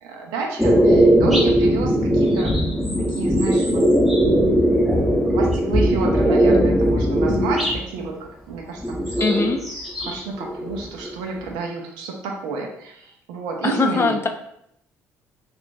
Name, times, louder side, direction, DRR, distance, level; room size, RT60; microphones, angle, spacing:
voice 1, 0.0-2.6 3.0-3.8 5.3-9.5 10.0-14.2, right 4 dB, 75° right, 1 dB, 0.6 m, -30 dB
sound 1, 0.6-7.8 8.8-10.1 10.4-11.4, equal, ahead, 0.9 m, -19 dB
voice 2, 9.2-9.6 13.6-14.3, left 4 dB, 35° left, 5 dB, 0.5 m, -21 dB
2.5 x 2.4 x 3.8 m, 0.74 s
hypercardioid pair, 50°, 8 cm